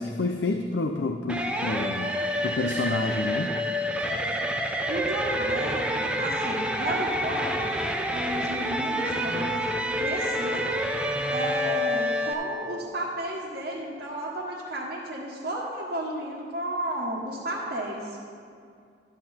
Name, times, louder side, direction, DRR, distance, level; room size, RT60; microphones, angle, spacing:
voice 1, 0.0-2.1 2.4-3.6, left 3 dB, 75° left, 5 dB, 0.5 m, -28 dB
sound 1, 1.3-12.3, equal, 5° right, 0.6 m, -28 dB
voice 2, 4.7-7.7 8.0-9.6 10.0-10.8 11.3-18.2, right 1 dB, 55° right, -6 dB, 1.3 m, -33 dB
12.0 x 7.7 x 4.3 m, 2.3 s
head